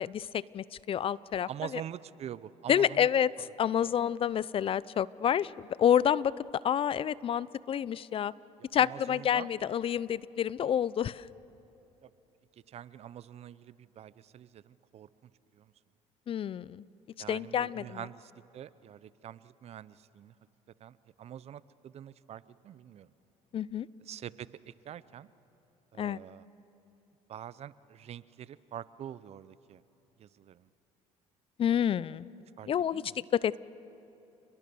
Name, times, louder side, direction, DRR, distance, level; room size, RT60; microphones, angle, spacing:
voice 1, 0.0-1.5 2.7-5.5 5.8-6.3 6.6-8.3 8.7-11.3 16.3-16.8 17.3-18.0 23.5-23.9 26.0-26.2 31.6-32.3 32.7-33.0 33.3-33.6, left 9 dB, 40° left, 21 dB, 0.5 m, -28 dB
voice 2, 1.5-3.1 3.8-3.9 8.8-9.5 12.0-12.1 12.7-15.7 17.2-20.3 20.8-23.1 24.1-25.3 25.9-26.5 27.3-29.8 30.2-30.7 32.6-33.2, right 10 dB, 50° right, 18 dB, 0.7 m, -45 dB
30.0 x 21.5 x 7.0 m, 2.9 s
supercardioid pair, 90°, 14 cm